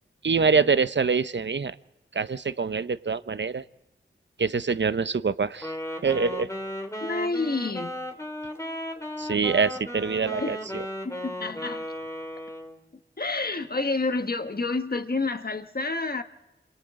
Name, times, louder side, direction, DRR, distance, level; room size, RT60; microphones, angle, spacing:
voice 1, 0.2-1.8 2.1-3.6 4.4-5.7 6.0-6.5 9.2-10.8, right 5 dB, 60° right, 13 dB, 0.8 m, -25 dB
Wind instrument woodwind instrument, 5.5-12.8, equal, 15° left, 2.9 m, -35 dB
voice 2, 7.0-7.9 10.4-10.5 11.0-11.9 13.2-16.2, left 3 dB, 45° left, 7 dB, 1.4 m, -29 dB
27.5 x 26.5 x 3.8 m, 0.97 s
wide cardioid pair, 45°, 21 cm